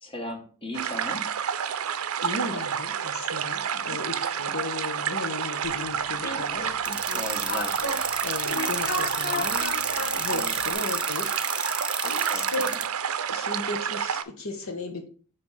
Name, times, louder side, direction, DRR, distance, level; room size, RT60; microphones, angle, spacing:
voice 1, 0.0-1.3 3.7-4.0 7.1-7.8 10.8-10.9 12.2-12.8, equal, 25° left, 2 dB, 1.3 m, -37 dB
sound 1, 0.7-14.2, right 8 dB, 75° right, 0.5 m, -29 dB
voice 2, 1.8-7.2 8.2-9.8 10.1-11.3 11.7-12.7 13.3-15.1, left 3 dB, 70° left, 5 dB, 0.9 m, -36 dB
sound 2, 5.6-10.7, left 1 dB, 45° left, 1.1 m, -35 dB
sound 3, 6.9-12.8, right 3 dB, 5° right, 0.3 m, -30 dB
6.3 x 3.4 x 5.6 m, 0.41 s
head